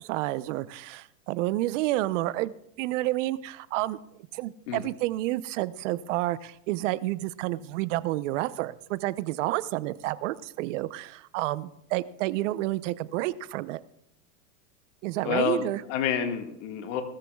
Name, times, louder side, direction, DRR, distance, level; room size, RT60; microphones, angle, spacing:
voice 1, 0.0-4.0 4.3-13.8 15.0-15.8, right 17 dB, 60° right, 16 dB, 0.8 m, -30 dB
voice 2, 15.2-17.0, left 7 dB, 60° left, 5 dB, 1.8 m, -29 dB
18.5 x 13.5 x 2.3 m, 0.75 s
supercardioid pair, 130°, 42 cm